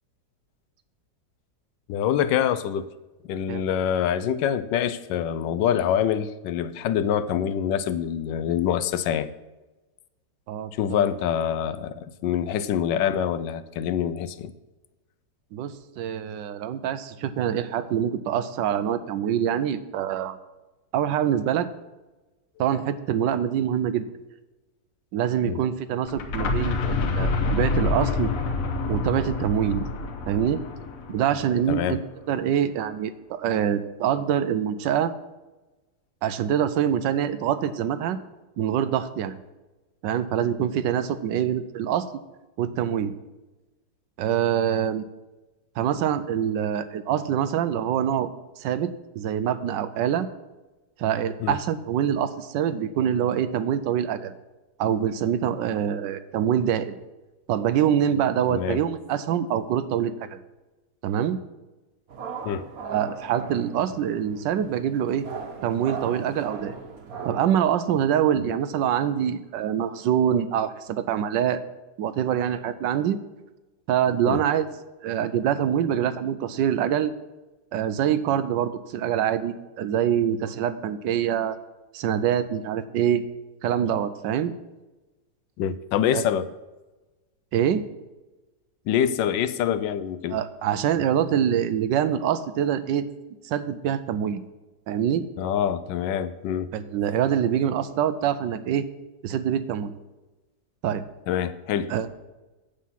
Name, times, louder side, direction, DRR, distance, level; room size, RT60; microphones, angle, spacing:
voice 1, 1.9-2.9 3.3-9.3 10.8-14.5 25.5-25.6 31.7-32.0 51.4-51.6 58.5-58.8 62.4-62.7 74.2-74.4 85.6-86.5 88.9-90.4 95.4-96.7 101.3-101.9, left 9 dB, 90° left, 14 dB, 1.3 m, -25 dB
voice 2, 10.5-11.1 15.5-20.4 20.9-21.7 22.6-24.0 25.1-28.3 28.9-29.8 30.3-30.6 31.1-32.0 32.3-35.1 36.2-38.2 38.6-39.4 40.0-42.1 42.6-43.1 44.2-45.1 45.8-48.3 48.6-50.3 51.0-54.3 54.8-57.0 57.5-60.4 61.0-61.4 62.8-65.3 65.6-66.7 67.2-71.6 72.0-73.2 73.9-74.7 75.0-77.1 77.7-81.6 81.9-83.2 83.6-84.5 86.1-86.2 87.5-87.8 90.3-93.1 93.4-94.4 94.9-95.2 96.7-98.9 99.2-100.0 100.8-101.0 101.9-102.1, right 9 dB, 90° right, 13 dB, 1.3 m, -25 dB
sound 1, 26.0-31.8, left 3 dB, 55° left, 1.2 m, -27 dB
sound 2, 62.1-67.5, right 5 dB, 55° right, 1.4 m, -38 dB
8.4 x 7.7 x 5.7 m, 1.1 s
omnidirectional pair, 1.9 m